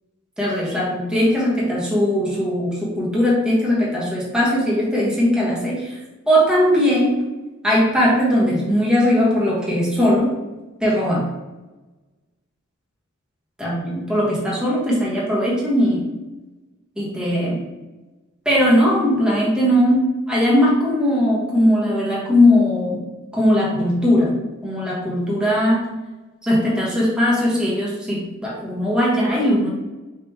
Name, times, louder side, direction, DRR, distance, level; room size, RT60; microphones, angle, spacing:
voice 1, 0.4-6.0 6.3-7.2 7.6-10.3 10.8-11.2 13.6-16.0 17.0-17.6 18.4-20.0 20.3-23.0 23.3-24.4 24.6-25.8 26.4-29.7, equal, 5° right, -6 dB, 1.3 m, -19 dB
5.0 x 3.7 x 2.8 m, 1.1 s
head